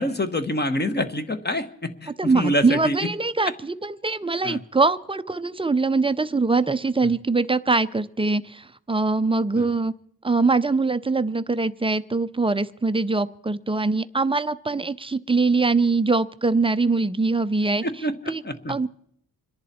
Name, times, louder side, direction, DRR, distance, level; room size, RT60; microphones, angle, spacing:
voice 1, 0.0-3.0 4.4-4.6 9.6-9.7 17.8-18.2 18.4-18.7, left 1 dB, 25° left, 9 dB, 1.1 m, -26 dB
voice 2, 2.2-9.9 10.2-17.8 18.3-18.4 18.7-18.9, right 3 dB, 15° right, 13 dB, 0.5 m, -23 dB
26.5 x 11.0 x 4.2 m, 0.67 s
wide cardioid pair, 100°, 40 cm